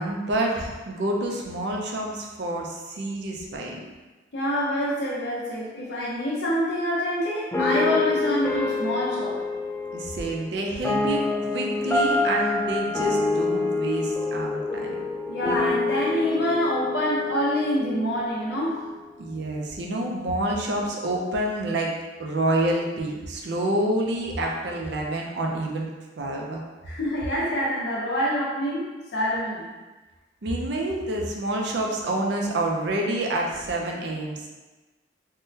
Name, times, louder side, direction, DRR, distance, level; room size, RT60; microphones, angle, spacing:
voice 1, 0.0-3.8 9.9-14.9 19.2-21.9 22.2-25.9 26.2-26.6 30.4-34.5, right 1 dB, 65° right, 0 dB, 0.5 m, -28 dB
voice 2, 4.3-9.4 15.3-18.9 26.9-28.9 29.1-29.7, equal, 65° left, -6 dB, 0.9 m, -26 dB
sound 1, 7.5-18.6, left 3 dB, 10° left, 0.4 m, -27 dB
3.5 x 2.2 x 2.7 m, 1.2 s
head